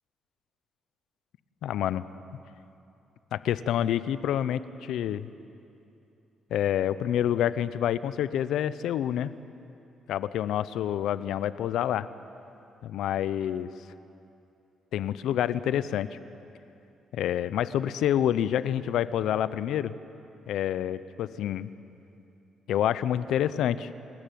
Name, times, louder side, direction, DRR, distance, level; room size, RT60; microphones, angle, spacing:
voice 1, 1.6-2.0 3.3-5.3 6.5-9.3 10.1-12.1 12.8-13.7 14.9-16.2 17.1-20.0 20.5-21.7 22.7-23.9, left 10 dB, 80° left, 15 dB, 0.7 m, -27 dB
29.5 x 14.0 x 9.3 m, 2.7 s
cardioid pair, 90°, 0 cm